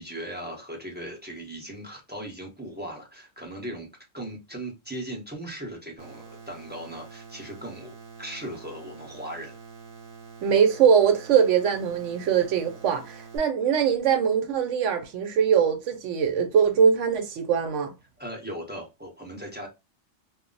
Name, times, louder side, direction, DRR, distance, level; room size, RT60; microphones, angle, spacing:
voice 1, 0.0-3.9 4.1-7.9 8.2-9.6 18.2-19.7, right 1 dB, 10° right, 0.6 m, -38 dB
sound 1, 6.0-13.4, right 5 dB, 45° right, 0.9 m, -46 dB
voice 2, 10.4-17.9, right 7 dB, 75° right, 0.9 m, -22 dB
2.2 x 2.0 x 3.7 m
omnidirectional pair, 1.3 m